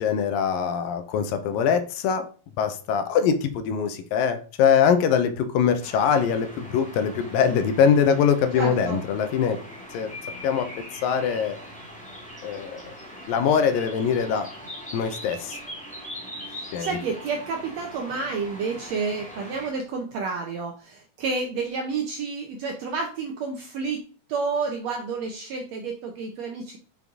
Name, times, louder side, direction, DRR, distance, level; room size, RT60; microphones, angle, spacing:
voice 1, 0.0-2.3 2.6-9.6 9.9-10.1 10.4-10.7 11.0-11.6 12.4-12.8 13.3-14.5 14.9-15.6 16.7-17.0, left 7 dB, 90° left, 8 dB, 2.4 m, -22 dB
sound 1, 5.8-19.7, equal, 5° left, 0.8 m, -41 dB
voice 2, 8.5-9.0 16.5-24.0 24.3-26.8, right 4 dB, 75° right, 2 dB, 1.6 m, -30 dB
6.2 x 5.4 x 3.6 m, 0.38 s
omnidirectional pair, 4.0 m